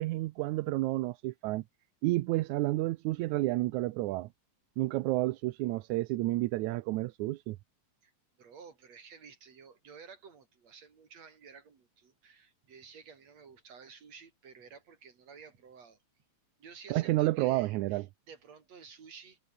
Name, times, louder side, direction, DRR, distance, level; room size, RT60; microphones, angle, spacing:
voice 1, 0.0-1.6 2.0-4.3 4.8-7.6 16.9-18.0, right 18 dB, 85° right, 2.1 m, -30 dB
voice 2, 8.4-16.0 16.6-19.4, right 6 dB, 65° right, 4.6 m, -53 dB
omnidirectional pair, 3.3 m